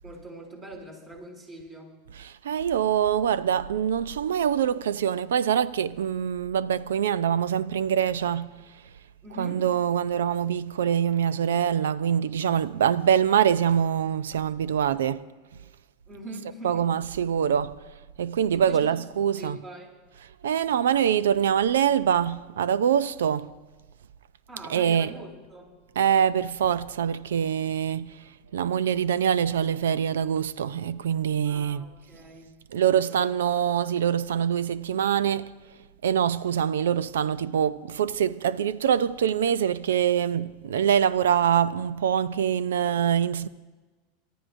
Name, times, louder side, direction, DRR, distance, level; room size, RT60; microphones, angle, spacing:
voice 1, 0.0-1.9 9.2-9.7 16.1-16.9 18.5-19.9 24.5-25.8 31.4-32.5 32.9-33.3, right 1 dB, 35° right, 6.5 m, -43 dB
voice 2, 2.2-8.5 9.4-15.2 16.6-17.8 18.2-19.6 20.4-23.5 24.7-25.1 26.0-28.1 28.5-31.8 32.7-35.5 36.0-43.5, right 9 dB, 80° right, 0.5 m, -24 dB
29.0 x 14.0 x 2.6 m
hypercardioid pair, 90°, 0 cm